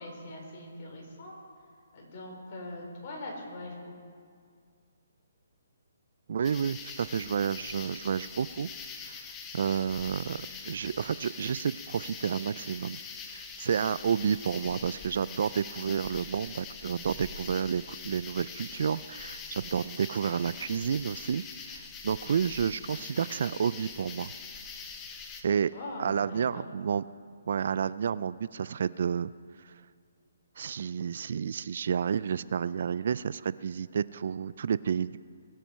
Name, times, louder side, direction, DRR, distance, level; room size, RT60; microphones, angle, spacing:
voice 1, 0.0-1.3 1.9-3.9 25.7-26.7, left 1 dB, 40° left, 0 dB, 3.8 m, -42 dB
voice 2, 6.3-8.7 9.1-9.2 9.5-13.0 13.3-24.3 25.4-25.7 26.0-27.0 27.5-29.3 29.6-29.7 30.6-35.2, right 7 dB, 60° right, 17 dB, 0.3 m, -30 dB
sound 1, 6.4-25.4, left 5 dB, 15° left, 1.1 m, -43 dB
21.5 x 7.5 x 5.5 m, 2.1 s
hypercardioid pair, 155°, 0 cm